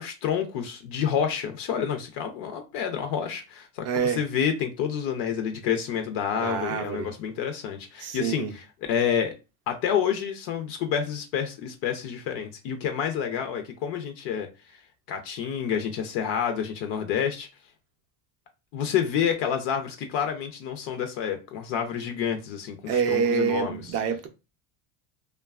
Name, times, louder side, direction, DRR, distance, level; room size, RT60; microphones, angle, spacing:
voice 1, 0.0-9.3 9.7-14.8 15.1-17.5 18.7-23.8, left 8 dB, 60° left, 0.6 m, -29 dB
voice 2, 3.8-4.2 6.4-7.1 8.0-8.5 22.9-24.3, right 6 dB, 35° right, 0.4 m, -26 dB
2.7 x 2.2 x 2.3 m
cardioid pair, 135°, 46 cm